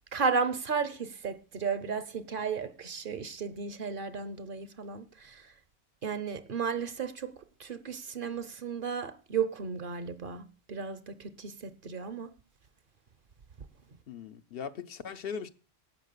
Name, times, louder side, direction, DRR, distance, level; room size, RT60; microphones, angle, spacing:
voice 1, 0.1-5.5 6.0-12.3 13.6-13.7, right 5 dB, 55° right, 1.0 m, -34 dB
voice 2, 14.1-15.5, left 6 dB, 65° left, 0.9 m, -39 dB
11.5 x 7.3 x 6.7 m
omnidirectional pair, 1.1 m